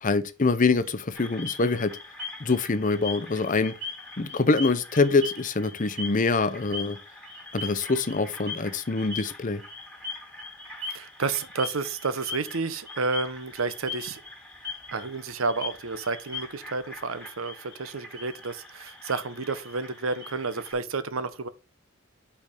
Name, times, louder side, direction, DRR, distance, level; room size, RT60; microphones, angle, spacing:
voice 1, 0.0-2.0 2.4-3.7 4.2-7.0 7.5-9.6, left 3 dB, 40° left, 0.7 m, -25 dB
sound 1, 1.1-20.7, left 3 dB, 5° left, 2.3 m, -40 dB
voice 2, 10.9-14.2 14.9-21.5, right 4 dB, 85° right, 0.8 m, -30 dB
5.4 x 4.7 x 5.1 m
head